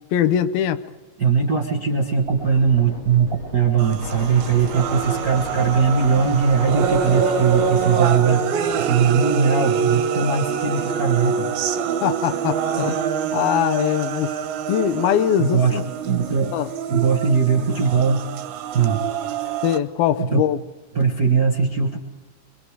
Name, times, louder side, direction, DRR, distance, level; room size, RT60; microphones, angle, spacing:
voice 1, 0.1-0.8 12.0-13.0 13.3-14.4 14.7-15.9 16.5-16.7 19.6-20.6, left 10 dB, 80° left, 2.7 m, -21 dB
voice 2, 1.2-8.4 8.8-11.5 15.4-16.6 16.9-18.2 18.7-19.0 19.4-19.6 20.2-20.4 20.9-22.0, right 6 dB, 65° right, 0.9 m, -20 dB
sound 1, 1.4-10.0, left 2 dB, 30° left, 3.9 m, -38 dB
sound 2, 3.8-19.8, right 7 dB, 80° right, 3.1 m, -25 dB
sound 3, 4.0-8.0 8.4-9.3 9.6-9.7 9.9-11.7 12.1-18.8, right 2 dB, 25° right, 3.8 m, -41 dB
24.0 x 24.0 x 4.8 m
omnidirectional pair, 4.3 m